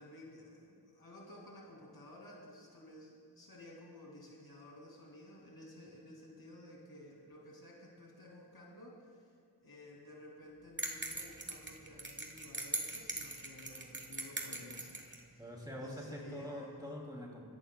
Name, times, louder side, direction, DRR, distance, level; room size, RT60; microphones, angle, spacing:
voice 1, 0.0-9.3 9.6-15.5 15.8-16.7, left 1 dB, 70° left, -3 dB, 2.4 m, -54 dB
sound 1, 10.8-15.2, right 2 dB, 30° right, 1.2 m, -41 dB
voice 2, 15.4-17.4, left 1 dB, 10° right, -2 dB, 2.7 m, -45 dB
21.5 x 11.5 x 2.3 m, 2.2 s
wide cardioid pair, 60°, 38 cm